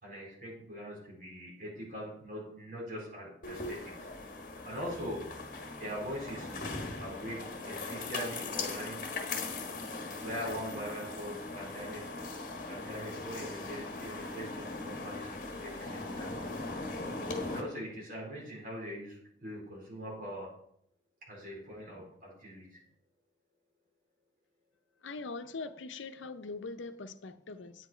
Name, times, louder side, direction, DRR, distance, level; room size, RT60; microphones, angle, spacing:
voice 1, 0.0-4.1 4.6-5.3 5.8-6.7 7.0-9.1 10.2-12.0 12.7-16.5 17.5-20.5 21.3-22.8, equal, 45° right, 4.3 m, -42 dB
sound 1, 3.4-17.6, left 3 dB, 45° left, 1.4 m, -40 dB
voice 2, 25.0-27.9, left 3 dB, 90° left, 0.7 m, -42 dB
9.1 x 8.4 x 4.4 m
head